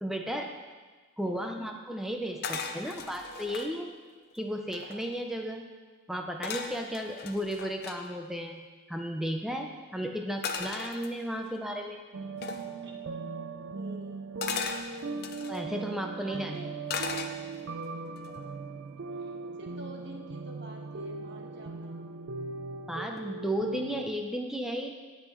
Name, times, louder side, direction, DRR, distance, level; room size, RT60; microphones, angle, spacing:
voice 1, 0.0-0.5 1.2-3.9 4.3-5.7 6.1-8.6 8.9-12.0 15.5-16.6 22.9-24.9, equal, ahead, 2 dB, 0.5 m, -34 dB
sound 1, 2.4-3.7 4.3-4.4 4.6-5.2 6.4-8.0 10.4-11.5 12.4-12.7 14.4-15.6 16.9-17.7 18.2-18.5, left 5 dB, 50° left, 0.6 m, -37 dB
sound 2, 12.1-24.0, right 4 dB, 70° right, 0.5 m, -39 dB
voice 2, 13.7-14.2 16.2-16.7 19.2-19.3 19.6-22.1, right 1 dB, 55° right, 0 dB, 1.3 m, -47 dB
16.5 x 5.6 x 3.1 m, 1.4 s
head